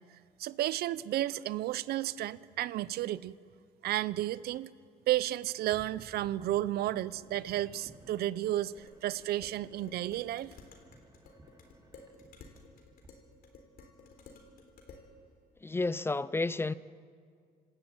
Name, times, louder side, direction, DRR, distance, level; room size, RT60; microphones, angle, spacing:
voice 1, 0.4-3.4 3.8-4.7 5.1-10.5, right 14 dB, 70° right, 18 dB, 0.6 m, -32 dB
sound 1, 5.6-13.1, right 1 dB, 20° right, 3.3 m, -57 dB
Dishes pots and pans, 8.8-15.1, left 4 dB, 60° left, 3.7 m, -54 dB
voice 2, 15.6-16.7, left 3 dB, 15° left, 17 dB, 0.5 m, -31 dB
27.0 x 13.5 x 8.8 m, 2.1 s
cardioid pair, 110°, 17 cm